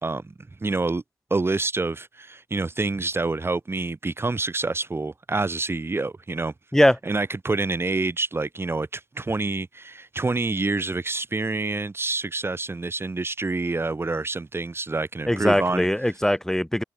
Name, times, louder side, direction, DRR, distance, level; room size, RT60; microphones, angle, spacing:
voice 1, 0.0-0.3 0.6-1.0 1.3-6.5 7.1-15.9, right 3 dB, 30° right, 4.0 m, -27 dB
voice 2, 15.3-16.8, left 1 dB, 5° left, 5.4 m, -21 dB
cardioid pair, 80°, 9 cm